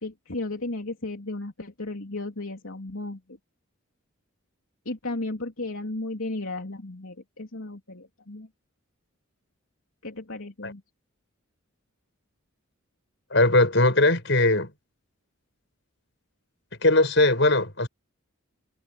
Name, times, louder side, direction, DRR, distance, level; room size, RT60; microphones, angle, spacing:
voice 1, 0.0-3.2 4.8-8.5 10.0-10.8, left 2 dB, 75° left, 3.2 m, -34 dB
voice 2, 13.3-14.7 16.8-17.9, left 2 dB, 55° left, 6.8 m, -20 dB
head